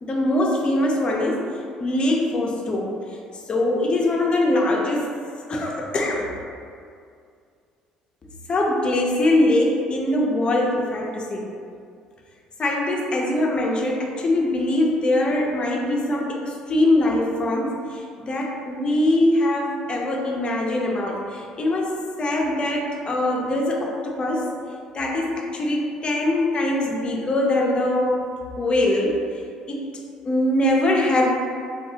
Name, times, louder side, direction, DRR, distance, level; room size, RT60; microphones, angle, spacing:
voice 1, 0.0-5.1 5.5-6.3 8.5-11.5 12.6-24.5 24.9-28.2 28.6-29.4 29.7-29.9 30.2-31.3, left 1 dB, 35° left, -1 dB, 0.4 m, -22 dB
2.6 x 2.3 x 2.7 m, 2.3 s
hypercardioid pair, 65°, 3 cm